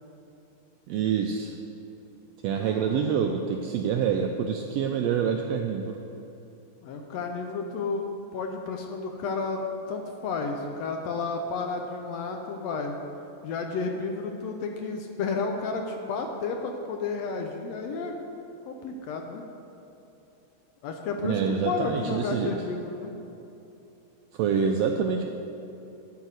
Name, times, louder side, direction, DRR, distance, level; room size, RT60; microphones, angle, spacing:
voice 1, 0.9-1.5 2.4-6.0 21.2-22.5 24.3-25.2, right 7 dB, 85° right, 3 dB, 1.5 m, -26 dB
voice 2, 2.6-3.2 6.8-13.0 13.4-18.2 18.6-19.4 20.8-23.1, left 4 dB, 75° left, 3 dB, 1.6 m, -32 dB
10.5 x 4.7 x 7.9 m, 2.9 s
omnidirectional pair, 3.4 m